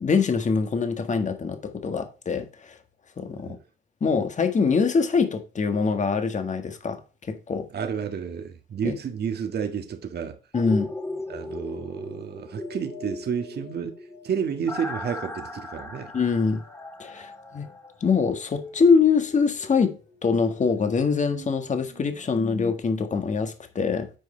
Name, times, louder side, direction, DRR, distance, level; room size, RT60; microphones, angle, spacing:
voice 1, 0.0-2.8 3.2-3.6 4.0-7.0 7.3-7.7 8.8-9.0 10.5-10.9 16.1-16.6 17.0-17.7 18.0-24.1, left 5 dB, 35° left, 1.6 m, -24 dB
voice 2, 7.7-10.4 11.3-16.1, right 7 dB, 55° right, 1.6 m, -31 dB
sound 1, 10.5-18.4 18.8-18.9, left 2 dB, 15° left, 1.5 m, -38 dB
sound 2, 10.9-14.6 15.8-22.7, left 5 dB, 90° left, 4.6 m, -47 dB
9.3 x 4.9 x 4.3 m
cardioid pair, 90°, 20 cm